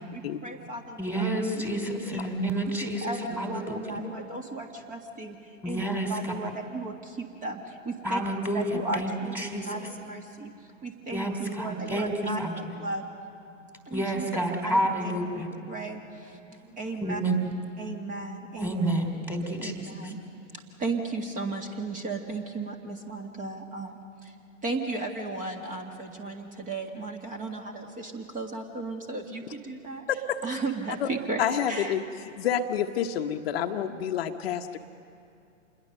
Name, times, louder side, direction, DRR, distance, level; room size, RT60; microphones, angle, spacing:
voice 1, 0.1-1.3 2.1-2.2 2.8-5.4 5.7-8.2 8.5-10.5 10.8-13.1 13.9-16.4 16.8-17.2 17.8-18.8 19.6-20.2 20.5-24.3 24.6-30.1 30.4-31.4 31.7-32.0, right 3 dB, 20° right, 4 dB, 1.8 m, -35 dB
voice 2, 1.0-4.0 5.6-6.6 8.0-9.8 11.1-12.8 13.9-15.5 17.0-17.5 18.6-20.1, right 1 dB, 5° right, 2 dB, 2.9 m, -30 dB
voice 3, 31.4-32.0 32.4-34.8, left 9 dB, 50° left, 5 dB, 1.1 m, -28 dB
27.0 x 21.5 x 6.6 m, 2.6 s
figure-of-eight pair, 115°, 39 cm